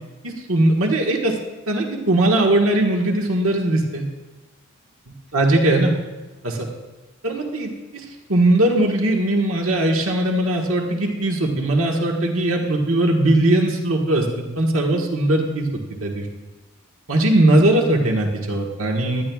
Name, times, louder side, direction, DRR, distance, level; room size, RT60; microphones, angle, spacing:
voice 1, 0.2-1.4 1.7-4.0 5.3-6.0 6.4-6.7 7.2-8.0 8.3-15.7 16.0-16.3 17.1-19.2, right 1 dB, 75° right, 1 dB, 1.5 m, -19 dB
18.5 x 12.5 x 2.4 m, 1.2 s
head